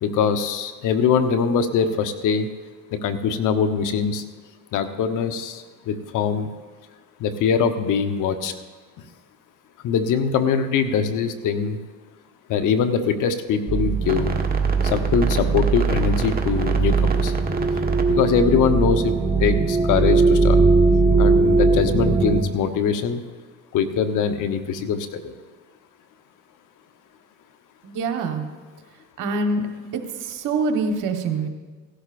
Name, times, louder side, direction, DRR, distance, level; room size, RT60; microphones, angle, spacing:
voice 1, 0.0-2.5 2.9-4.2 4.7-6.5 7.2-8.5 9.8-11.8 12.5-14.3 14.8-17.3 18.1-19.1 19.4-20.6 21.2-23.2 23.7-25.3, left 6 dB, 65° left, 9 dB, 1.0 m, -22 dB
sound 1, 13.7-22.4, right 4 dB, 25° right, 1.4 m, -19 dB
voice 2, 27.8-28.5 29.2-29.7 29.9-31.5, right 3 dB, 65° right, 5 dB, 1.4 m, -25 dB
16.5 x 11.5 x 2.6 m, 1.4 s
supercardioid pair, 75°, 34 cm